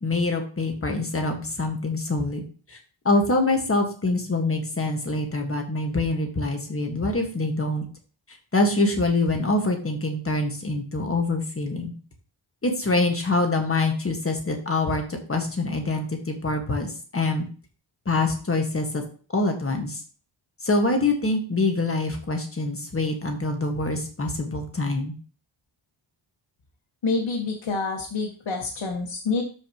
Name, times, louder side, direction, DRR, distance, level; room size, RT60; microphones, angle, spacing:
voice 1, 0.0-2.4 3.0-7.8 8.5-11.9 12.6-17.5 18.0-19.0 19.3-20.0 20.6-25.1, left 2 dB, 30° left, 3 dB, 1.6 m, -25 dB
voice 2, 27.0-29.4, left 4 dB, 75° left, -1 dB, 1.7 m, -27 dB
12.5 x 5.1 x 3.0 m, 0.40 s
wide cardioid pair, 160°, 47 cm